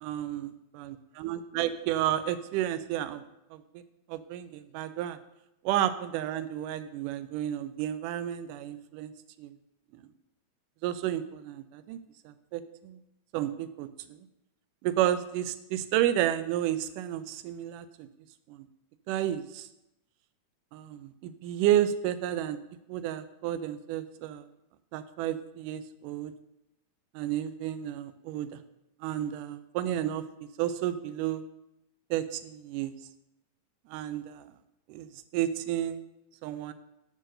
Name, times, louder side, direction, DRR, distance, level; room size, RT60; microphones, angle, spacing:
voice 1, 0.0-0.5 1.2-3.2 3.5-3.6 4.1-5.2 5.7-9.1 9.4-9.5 10.8-12.0 12.3-13.0 13.3-13.9 14.8-18.1 18.5-18.7 19.1-19.7 20.7-22.6 22.9-24.4 24.9-26.3 27.2-28.5 29.0-30.2 30.6-31.4 32.1-32.9 33.9-34.4 34.9-36.0 36.4-36.7, right 12 dB, 90° right, 12 dB, 2.1 m, -31 dB
9.2 x 3.8 x 6.5 m, 0.86 s
omnidirectional pair, 3.6 m